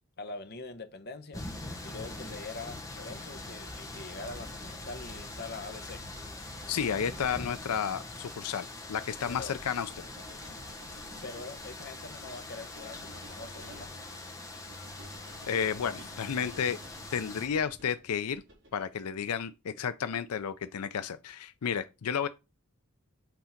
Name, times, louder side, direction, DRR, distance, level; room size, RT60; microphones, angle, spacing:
voice 1, 0.2-1.5 1.8-6.1 9.3-9.5 11.2-13.9, left 3 dB, 45° left, 1.1 m, -43 dB
sound 1, 1.3-17.5, left 2 dB, 15° left, 1.1 m, -43 dB
Accelerating revving vroom, 1.7-8.0, equal, 30° right, 2.2 m, -55 dB
voice 2, 6.7-9.9 15.4-16.8 17.1-18.4 18.7-22.3, left 7 dB, 90° left, 0.5 m, -32 dB
sound 2, 8.9-18.9, right 1 dB, 55° right, 4.3 m, -54 dB
8.2 x 3.7 x 5.8 m
head